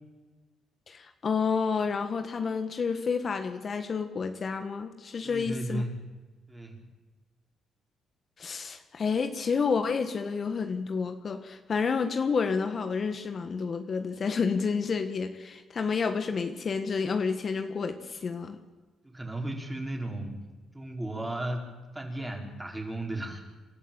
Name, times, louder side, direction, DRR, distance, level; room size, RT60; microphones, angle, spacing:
voice 1, 0.9-5.8 8.4-18.6, left 5 dB, 45° left, 7 dB, 1.6 m, -30 dB
voice 2, 5.2-6.1 6.5-6.8 19.0-20.5 20.7-23.4, right 1 dB, 15° right, 1 dB, 5.3 m, -35 dB
28.0 x 13.0 x 9.0 m, 1.3 s
cardioid pair, 90°, 0 cm